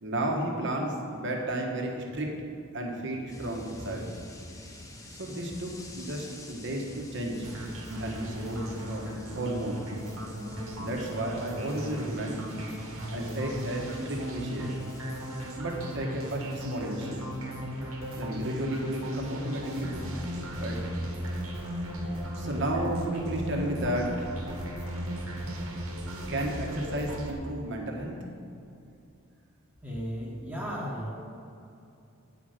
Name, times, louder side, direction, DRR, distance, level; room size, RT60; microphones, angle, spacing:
voice 1, 0.0-2.3 2.7-4.1 5.2-7.5 8.0-9.0 9.4-9.8 10.8-12.4 13.1-14.7 15.6-17.2 18.1-20.1 20.5-20.8 22.4-24.3 26.1-28.2, right 1 dB, 60° right, 0 dB, 1.4 m, -33 dB
sound 1, 3.3-15.6, left 1 dB, 15° left, 0.9 m, -48 dB
sound 2, 7.4-27.3, equal, 75° right, 1.5 m, -36 dB
sound 3, 19.3-24.6, equal, 55° left, 1.3 m, -51 dB
voice 2, 29.8-31.1, equal, 10° right, -4 dB, 1.3 m, -35 dB
9.2 x 4.9 x 6.5 m, 2.7 s
head